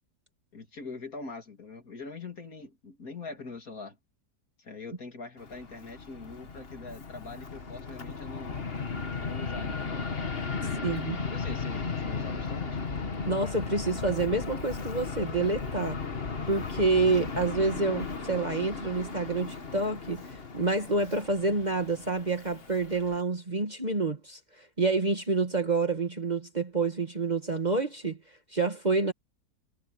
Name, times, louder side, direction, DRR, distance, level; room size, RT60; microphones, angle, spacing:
voice 1, 0.5-4.0 4.6-8.6 9.2-10.1 10.5-12.8, left 4 dB, 55° left, 3.3 m, -43 dB
Fixed-wing aircraft airplane, 5.4-23.2, left 4 dB, 35° left, 1.8 m, -36 dB
voice 2, 10.8-11.2 13.3-16.0 16.5-28.2 28.5-29.1, right 3 dB, 25° right, 1.7 m, -28 dB
omnidirectional pair, 1.8 m